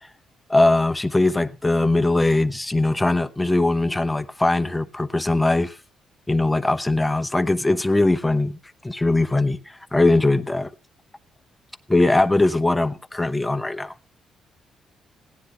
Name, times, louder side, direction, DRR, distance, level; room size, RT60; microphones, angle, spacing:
voice 1, 0.5-5.8 6.3-8.6 8.8-10.7 11.9-13.9, left 2 dB, 10° left, 1.0 m, -20 dB
17.0 x 10.0 x 3.4 m
cardioid pair, 90°, 0 cm